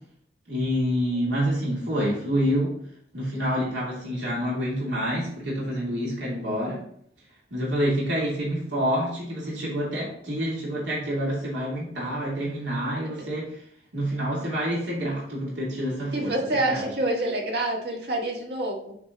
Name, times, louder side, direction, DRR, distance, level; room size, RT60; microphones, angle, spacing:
voice 1, 0.5-2.7 3.1-6.8 7.5-13.5 13.9-16.3 16.6-16.8, equal, 90° right, -5 dB, 2.8 m, -27 dB
voice 2, 16.1-19.0, right 1 dB, 65° right, -1 dB, 1.6 m, -27 dB
8.5 x 3.3 x 3.9 m, 0.66 s
head